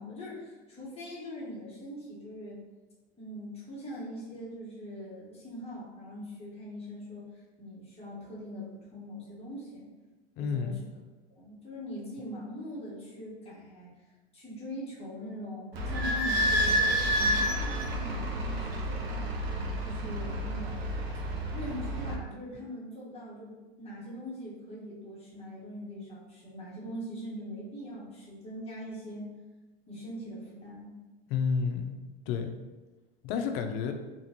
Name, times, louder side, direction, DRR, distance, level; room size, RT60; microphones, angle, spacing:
voice 1, 0.0-2.6 3.2-9.9 10.4-10.8 11.4-13.9 14.3-19.4 19.8-20.9 21.5-29.3 29.9-30.9, equal, 20° left, -6 dB, 1.2 m, -42 dB
voice 2, 10.4-10.8 31.3-32.0 32.3-32.5 33.2-33.9, left 6 dB, 45° left, 6 dB, 0.4 m, -30 dB
Idling / Squeak, 15.7-22.1, equal, 85° right, 0.6 m, -29 dB
2.9 x 2.5 x 2.8 m, 1.2 s
hypercardioid pair, 95°, 30 cm